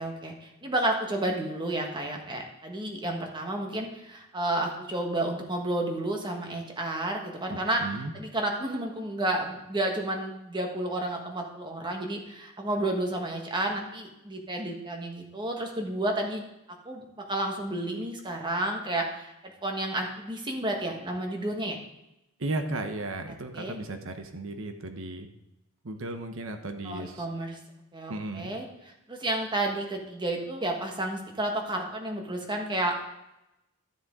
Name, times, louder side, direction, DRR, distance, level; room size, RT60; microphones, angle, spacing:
voice 1, 0.0-16.4 16.8-21.8 23.5-23.8 26.8-27.6 27.9-33.0, right 1 dB, 20° right, 2 dB, 1.4 m, -31 dB
voice 2, 7.5-8.1 22.4-25.3 25.8-27.3 28.1-28.5, right 2 dB, 65° right, 7 dB, 1.0 m, -35 dB
12.5 x 7.1 x 3.7 m, 0.90 s
head